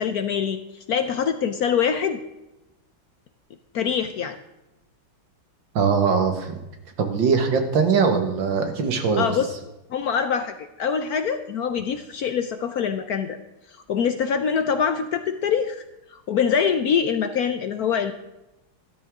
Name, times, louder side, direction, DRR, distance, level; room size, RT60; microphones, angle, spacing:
voice 1, 0.0-2.2 3.7-4.4 9.2-9.5 9.9-13.4 13.9-15.8 16.1-18.1, left 7 dB, 65° left, 9 dB, 1.0 m, -24 dB
voice 2, 5.8-6.6 7.0-9.3, right 5 dB, 70° right, 5 dB, 2.2 m, -21 dB
13.0 x 12.5 x 3.7 m, 0.94 s
omnidirectional pair, 2.2 m